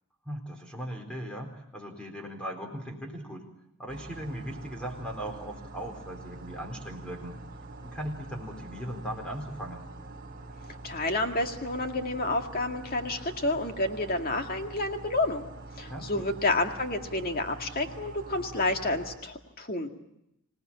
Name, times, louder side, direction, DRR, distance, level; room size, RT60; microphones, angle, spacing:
voice 1, 0.2-3.5 3.8-7.4 7.8-9.9 15.9-16.3, equal, 5° left, 3 dB, 4.1 m, -38 dB
sound 1, 3.9-19.2, right 2 dB, 40° right, 5.0 m, -45 dB
voice 2, 10.8-15.5 15.8-19.9, left 2 dB, 40° left, 4 dB, 2.1 m, -29 dB
26.0 x 18.0 x 8.7 m, 0.82 s
head